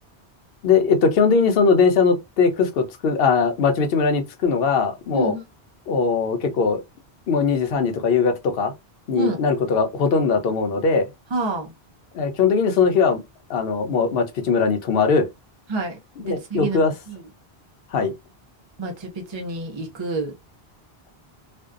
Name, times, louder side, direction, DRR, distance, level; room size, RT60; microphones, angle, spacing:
voice 1, 0.6-5.3 5.9-6.8 7.3-8.7 9.1-11.1 12.1-13.2 13.5-15.3 16.3-16.9 17.9-18.1, left 5 dB, 70° left, 0.8 m, -20 dB
voice 2, 5.1-5.4 9.1-9.4 11.3-11.7 15.7-17.2 18.8-20.3, right 3 dB, 40° right, 0.4 m, -28 dB
2.5 x 2.2 x 2.3 m
omnidirectional pair, 1.1 m